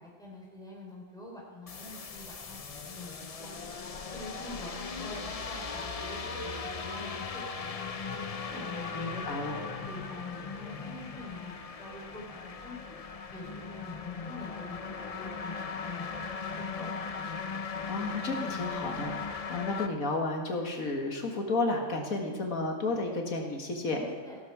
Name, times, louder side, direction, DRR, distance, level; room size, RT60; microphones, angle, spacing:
voice 1, 0.0-3.7 4.1-4.7 5.0-8.0 8.4-9.2 9.5-13.0 13.3-17.0 22.1-22.4 23.9-24.4, left 2 dB, 5° left, -3 dB, 3.9 m, -46 dB
sound 1, 1.7-19.9, left 5 dB, 35° left, 0.6 m, -38 dB
voice 2, 8.9-9.6 17.9-24.0, left 2 dB, 85° left, 2 dB, 2.1 m, -32 dB
16.0 x 12.5 x 4.7 m, 1.4 s
omnidirectional pair, 1.4 m